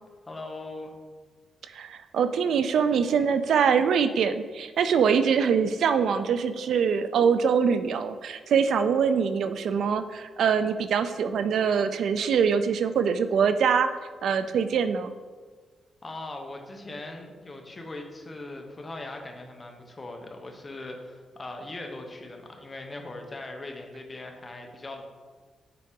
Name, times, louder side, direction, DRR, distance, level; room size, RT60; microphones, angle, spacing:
voice 1, 0.3-0.9 16.0-25.0, left 2 dB, 20° left, 3 dB, 0.8 m, -40 dB
voice 2, 1.7-13.9 14.2-15.1, right 6 dB, 70° right, 10 dB, 0.3 m, -24 dB
6.7 x 4.7 x 3.7 m, 1.5 s
wide cardioid pair, 140°, 0 cm